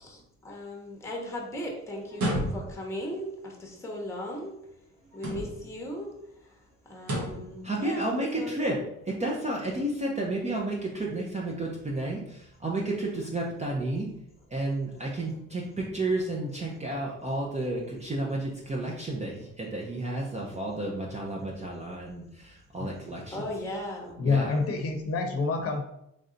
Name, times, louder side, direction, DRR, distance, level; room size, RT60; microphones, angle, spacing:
voice 1, 0.0-4.7 5.1-8.8 22.4-22.5 23.3-24.2, left 1 dB, 10° left, 0 dB, 0.9 m, -38 dB
sound 1, 2.1-2.9 5.1-5.8 7.0-7.5, right 1 dB, 65° right, 1.2 m, -31 dB
voice 2, 7.6-8.8 9.2-12.2 12.6-14.1 14.5-22.2 22.7-23.4 24.2-24.6, right 2 dB, 25° right, -2 dB, 0.6 m, -31 dB
voice 3, 24.2-25.8, left 4 dB, 50° left, 5 dB, 0.7 m, -27 dB
3.3 x 2.6 x 3.8 m, 0.80 s
cardioid pair, 90°, 30 cm